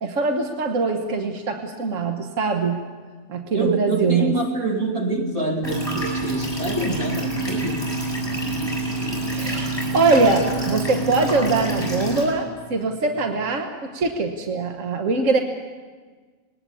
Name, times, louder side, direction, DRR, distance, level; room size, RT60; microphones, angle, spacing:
voice 1, 0.0-2.8 3.3-4.3 9.3-15.4, right 3 dB, 65° right, 4 dB, 1.6 m, -22 dB
voice 2, 3.5-7.9, right 2 dB, 85° right, 2 dB, 2.9 m, -26 dB
sound 1, 5.6-12.2, right 2 dB, 15° left, 7.3 m, -27 dB
20.5 x 18.5 x 8.5 m, 1.5 s
omnidirectional pair, 1.5 m